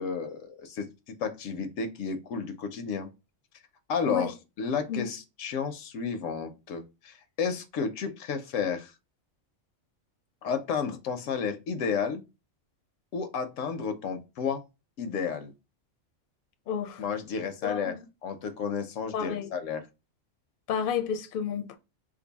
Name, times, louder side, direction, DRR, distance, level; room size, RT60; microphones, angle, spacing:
voice 1, 0.0-3.1 3.9-8.9 10.4-12.2 13.1-14.6 15.0-15.5 17.0-17.9 18.2-19.8, left 6 dB, 90° left, 1.0 m, -32 dB
voice 2, 16.7-17.0 17.6-18.1 19.1-19.5 20.7-21.8, left 7 dB, 60° left, 0.6 m, -31 dB
2.6 x 2.5 x 4.0 m
omnidirectional pair, 1.3 m